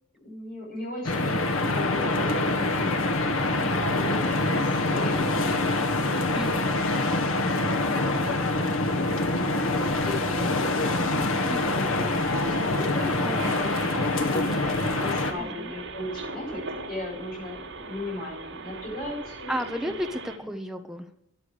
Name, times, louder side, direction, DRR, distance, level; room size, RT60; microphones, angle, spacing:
voice 1, 0.2-6.4 7.8-8.7 9.5-11.0 11.7-13.2 13.5-13.7 14.2-14.4 14.9-19.9, left 2 dB, 40° left, -3 dB, 7.7 m, -37 dB
sound 1, 1.0-15.3, left 2 dB, 75° left, 1.6 m, -25 dB
voice 2, 6.3-6.8 11.4-11.8 13.2-14.7 15.4-15.7 19.5-21.1, equal, ahead, 5 dB, 1.2 m, -35 dB
sound 2, 12.1-20.4, right 3 dB, 65° right, 4.2 m, -39 dB
13.0 x 11.0 x 6.6 m, 0.73 s
head